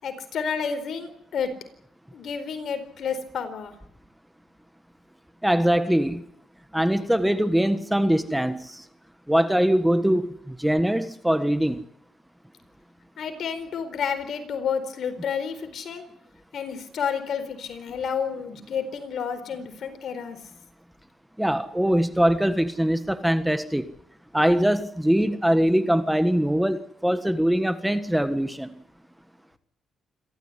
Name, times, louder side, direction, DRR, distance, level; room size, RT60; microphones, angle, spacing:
voice 1, 0.0-1.5 2.1-3.7 13.2-16.0 16.5-20.4, left 6 dB, 60° left, 9 dB, 4.3 m, -30 dB
voice 2, 5.4-6.2 6.7-8.8 9.3-11.8 21.4-23.9 24.3-28.8, equal, 5° right, 10 dB, 1.5 m, -22 dB
27.5 x 13.5 x 9.9 m, 0.72 s
cardioid pair, 90°, 0 cm